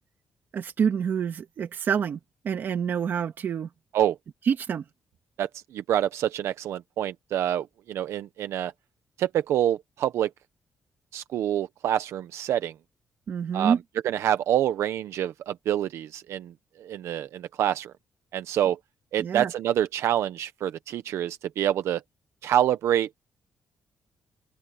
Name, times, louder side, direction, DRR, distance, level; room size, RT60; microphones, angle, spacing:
voice 1, 0.5-2.2 2.4-3.7 4.5-4.8 13.3-13.8 19.2-19.5, right 7 dB, 45° right, 1.9 m, -27 dB
voice 2, 5.4-8.7 9.2-10.3 11.1-12.7 13.5-13.7 14.0-16.5 16.8-17.9 18.3-18.8 19.1-22.0 22.4-23.1, right 11 dB, 80° right, 0.8 m, -26 dB
open air
wide cardioid pair, 175°, 5 cm